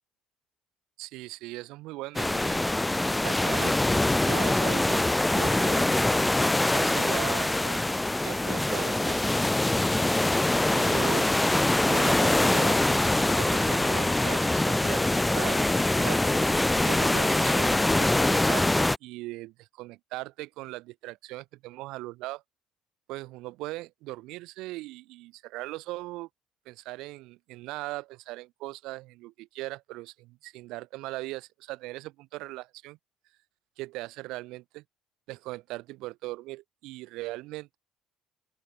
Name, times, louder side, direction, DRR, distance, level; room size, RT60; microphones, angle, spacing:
voice 1, 1.0-2.6 3.2-3.8 4.2-5.1 5.3-5.9 6.7-9.4 10.7-11.3 11.9-22.4 23.1-26.3 26.7-33.0 33.8-34.8 35.3-37.8, right 20 dB, 70° right, 2.4 m, -39 dB
sound 1, 2.2-19.0, left 2 dB, 10° left, 0.3 m, -24 dB
open air
hypercardioid pair, 60°, 0 cm